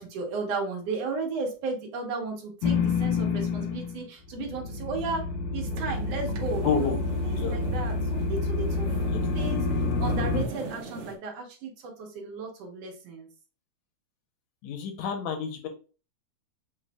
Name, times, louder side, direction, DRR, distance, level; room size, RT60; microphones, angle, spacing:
voice 1, 0.0-5.3 5.5-7.0 7.2-8.9 9.3-13.3, right 3 dB, 65° right, 1 dB, 1.9 m, -34 dB
sound 1, 2.6-4.0 4.3-10.4, left 4 dB, 90° left, 2.3 m, -28 dB
sound 2, 5.7-11.2, right 4 dB, 80° right, 1.1 m, -42 dB
voice 2, 6.6-7.0 7.4-7.6 9.1-9.2 14.6-15.7, left 6 dB, 75° left, 5 dB, 2.0 m, -29 dB
6.8 x 3.1 x 2.3 m, 0.35 s
omnidirectional pair, 3.5 m